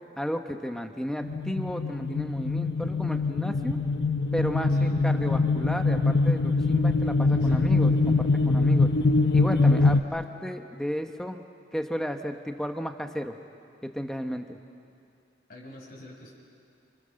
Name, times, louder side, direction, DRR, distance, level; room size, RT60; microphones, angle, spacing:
voice 1, 0.2-3.8 4.3-8.9 9.3-11.4 11.7-13.3 13.8-14.6, equal, 5° left, 5 dB, 1.2 m, -33 dB
sound 1, 1.2-10.0, left 3 dB, 70° left, 0.7 m, -23 dB
voice 2, 7.3-7.8 9.6-10.2 15.5-16.3, left 1 dB, 55° left, -4 dB, 5.4 m, -47 dB
28.0 x 28.0 x 6.6 m, 2.5 s
head